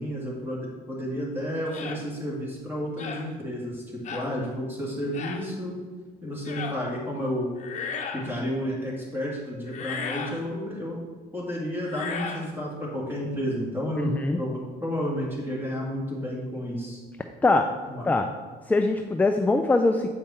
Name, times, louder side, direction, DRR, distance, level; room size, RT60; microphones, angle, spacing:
voice 1, 0.0-3.8 4.1-5.8 6.2-7.5 8.1-11.0 11.3-17.0 17.9-18.1, equal, 15° right, -4 dB, 2.3 m, -31 dB
sound 1, 1.7-2.0 3.0-3.3 4.0-4.3 5.1-5.4 6.4-6.8 7.6-8.3 9.7-10.4 11.8-12.5, left 5 dB, 45° left, 0.9 m, -34 dB
voice 2, 14.0-14.4 17.4-17.7 18.0-18.3 18.7-20.1, left 2 dB, 10° left, 5 dB, 0.4 m, -22 dB
7.7 x 5.2 x 4.3 m, 1.5 s
cardioid pair, 110°, 17 cm